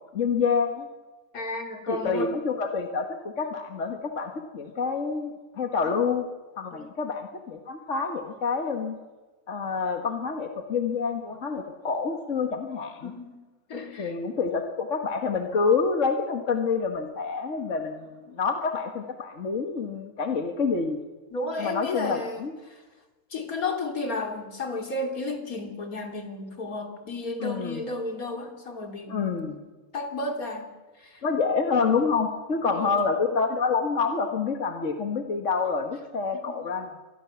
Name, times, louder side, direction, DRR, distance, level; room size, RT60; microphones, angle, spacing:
voice 1, 0.1-0.9 1.9-6.3 6.6-9.0 9.5-13.1 14.0-21.0 21.6-22.5 27.4-27.8 29.1-29.6 31.2-37.0, left 5 dB, 60° left, 5 dB, 1.9 m, -27 dB
voice 2, 1.3-2.4 5.8-6.0 6.7-6.8 13.0-13.4 13.7-14.1 21.3-22.8 23.3-29.5 29.9-30.7 31.0-31.2 32.6-33.0 36.3-36.7, left 2 dB, 80° left, 4 dB, 3.5 m, -33 dB
25.5 x 20.0 x 7.0 m, 1.2 s
omnidirectional pair, 1.5 m